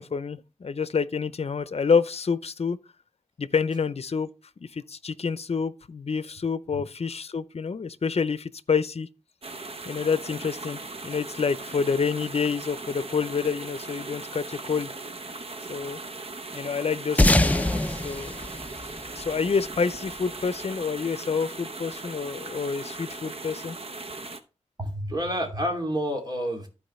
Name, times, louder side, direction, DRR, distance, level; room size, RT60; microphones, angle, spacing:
voice 1, 0.0-2.8 3.4-4.3 4.7-9.1 9.9-14.9 15.7-16.0 16.5-18.4 19.1-23.8, left 5 dB, 60° left, 0.6 m, -28 dB
sound 1, 9.4-24.4, right 3 dB, 55° right, 0.9 m, -39 dB
sound 2, 17.2-20.0, left 1 dB, 10° left, 0.5 m, -23 dB
voice 2, 24.8-26.7, equal, 35° right, 2.7 m, -29 dB
14.0 x 4.8 x 3.2 m
wide cardioid pair, 90°, 12 cm